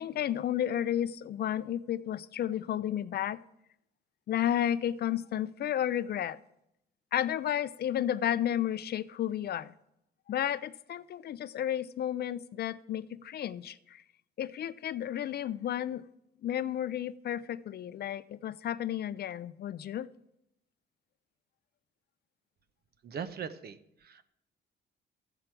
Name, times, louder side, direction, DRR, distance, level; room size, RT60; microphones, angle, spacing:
voice 1, 0.0-3.4 4.3-6.4 7.1-9.7 10.3-14.0 14.4-16.0 16.4-20.1, left 11 dB, 55° left, 0.4 m, -32 dB
voice 2, 23.0-24.2, right 7 dB, 50° right, 0.8 m, -40 dB
12.5 x 7.9 x 4.5 m
cardioid pair, 90°, 20 cm